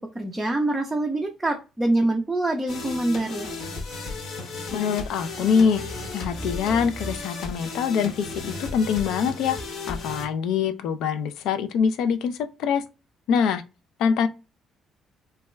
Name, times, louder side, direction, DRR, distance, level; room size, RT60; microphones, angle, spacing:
voice 1, 0.0-3.5, right 2 dB, 5° right, 0.4 m, -25 dB
sound 1, 2.7-10.3, left 3 dB, 55° left, 0.8 m, -34 dB
voice 2, 4.7-5.8 6.1-9.6 9.9-12.8 13.3-13.6 14.0-14.3, left 6 dB, 80° left, 0.4 m, -24 dB
3.3 x 2.2 x 3.0 m
cardioid pair, 160°, 0 cm